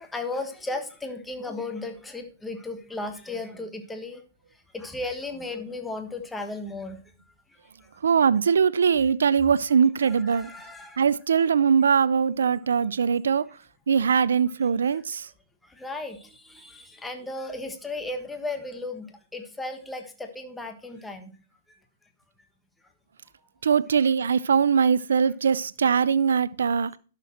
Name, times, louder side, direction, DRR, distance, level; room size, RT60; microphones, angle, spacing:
voice 1, 0.0-4.2 4.5-7.0 7.5-7.9 10.0-11.0 14.8-15.0 15.6-21.4 21.7-21.8, left 2 dB, 10° left, 1.4 m, -35 dB
voice 2, 8.0-10.5 11.0-13.4 13.9-15.3 23.6-26.9, right 6 dB, 80° right, 0.5 m, -21 dB
11.5 x 6.7 x 4.3 m
hypercardioid pair, 125°, 0 cm